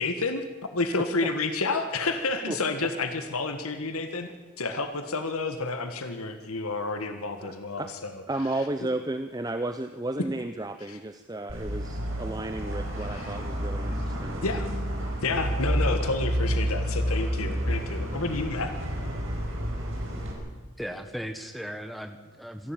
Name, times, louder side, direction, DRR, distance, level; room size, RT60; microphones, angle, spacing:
voice 1, 0.0-8.1 10.9-11.0 13.1-13.4 14.4-14.7 15.2-18.7, left 3 dB, 80° left, 8 dB, 1.6 m, -30 dB
voice 2, 1.0-1.3 2.5-2.6 7.4-7.9 8.3-14.6, right 2 dB, 15° right, 9 dB, 0.6 m, -33 dB
sound 1, 11.5-20.3, equal, 65° right, 4.8 m, -30 dB
voice 3, 20.8-22.7, equal, ahead, 7 dB, 1.4 m, -37 dB
26.5 x 11.5 x 9.1 m, 1.4 s
head